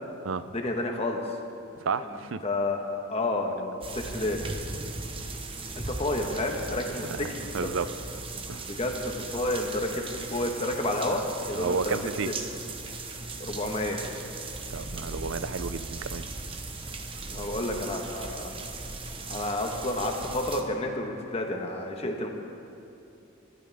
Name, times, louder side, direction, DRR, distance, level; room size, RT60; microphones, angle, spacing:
voice 1, 0.5-1.4 2.0-2.2 2.4-2.8 3.1-4.4 5.8-7.7 8.3-8.4 8.7-12.4 13.4-14.0 17.3-18.5 19.3-22.3, left 1 dB, 30° left, 2 dB, 1.4 m, -30 dB
voice 2, 1.8-2.4 7.0-7.9 8.5-8.7 11.5-12.3 14.7-16.3, right 5 dB, 70° right, 13 dB, 0.5 m, -32 dB
sound 1, 3.8-20.6, right 3 dB, 25° right, 0.9 m, -38 dB
22.5 x 12.0 x 3.6 m, 2.7 s
head